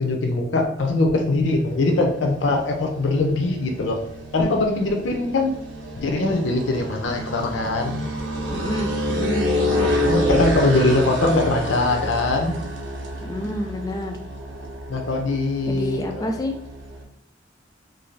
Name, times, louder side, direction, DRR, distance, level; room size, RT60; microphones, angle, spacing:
voice 1, 0.0-4.0 4.3-5.5 6.0-8.0 9.7-12.6 14.9-16.3, left 2 dB, 85° left, 3 dB, 0.5 m, -22 dB
sound 1, 1.5-17.0, equal, 85° right, 0.6 m, -29 dB
voice 2, 8.5-10.0 13.2-14.2 15.7-16.5, left 1 dB, 20° left, 4 dB, 0.3 m, -29 dB
2.6 x 2.3 x 3.1 m, 0.68 s
head